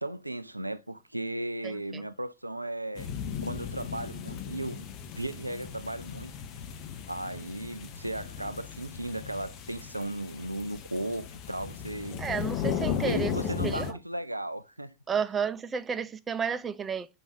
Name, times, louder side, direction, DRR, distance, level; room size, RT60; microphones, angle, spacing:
voice 1, 0.0-3.1 3.4-4.9 5.2-6.3 7.1-12.2 13.1-14.9, right 1 dB, 90° right, 0.3 m, -36 dB
voice 2, 1.6-2.0 12.2-13.3 13.6-14.0 15.1-17.1, right 6 dB, 25° right, 0.6 m, -32 dB
sound 1, 3.0-13.9, left 7 dB, 45° left, 1.0 m, -36 dB
5.4 x 4.4 x 5.0 m
figure-of-eight pair, 85°, 0 cm